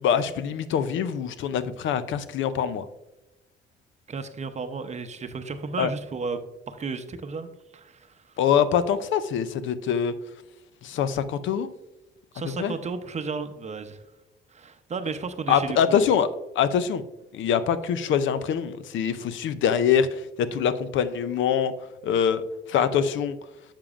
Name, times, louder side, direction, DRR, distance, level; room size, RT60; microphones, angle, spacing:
voice 1, 0.0-2.8 5.8-5.9 8.4-10.1 10.8-11.7 12.6-12.7 15.5-16.3 16.6-17.0 17.3-21.7 22.0-22.4 22.7-23.3, left 8 dB, 75° left, 13 dB, 0.5 m, -24 dB
voice 2, 4.1-6.4 6.7-8.2 12.3-14.0 14.5-16.0, right 4 dB, 35° right, 9 dB, 0.6 m, -33 dB
7.3 x 6.8 x 2.4 m, 0.97 s
cardioid pair, 90°, 20 cm